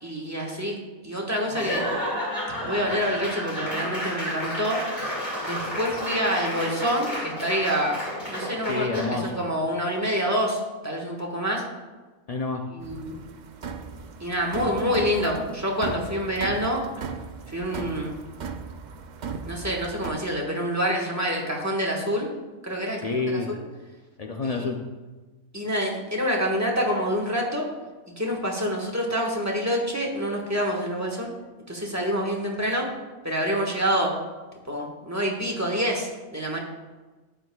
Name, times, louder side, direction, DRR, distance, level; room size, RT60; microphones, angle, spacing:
voice 1, 0.0-0.8 1.0-1.8 2.6-4.8 5.4-8.0 8.3-11.6 12.7-13.1 14.2-16.8 17.5-18.1 19.5-22.3 22.6-23.0 23.5-23.6 24.4-24.6 25.5-27.7 28.1-31.3 31.7-32.9 33.2-34.1 34.7-36.6, equal, 10° right, -1 dB, 1.3 m, -27 dB
Laughter / Applause / Crowd, 1.5-9.3, equal, 30° left, 2.5 m, -31 dB
voice 2, 8.7-9.4 12.3-12.6 23.0-23.5 24.2-24.8, left 3 dB, 80° left, 2 dB, 0.3 m, -28 dB
sound 1, 12.8-20.1, right 5 dB, 85° right, 0.4 m, -37 dB
12.0 x 9.0 x 2.3 m, 1.3 s
omnidirectional pair, 1.5 m